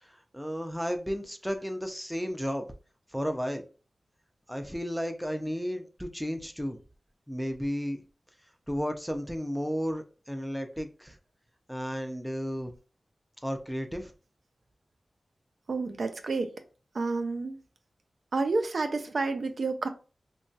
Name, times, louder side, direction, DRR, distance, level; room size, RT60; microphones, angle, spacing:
voice 1, 0.0-2.7 3.1-3.6 4.5-6.8 7.3-8.0 8.7-11.2 11.7-12.7 13.4-14.1, equal, ahead, 0.4 m, -33 dB
voice 2, 15.7-16.5 16.9-17.6 18.3-19.9, right 3 dB, 70° right, 0.4 m, -29 dB
2.8 x 2.2 x 2.6 m
wide cardioid pair, 95°, 0 cm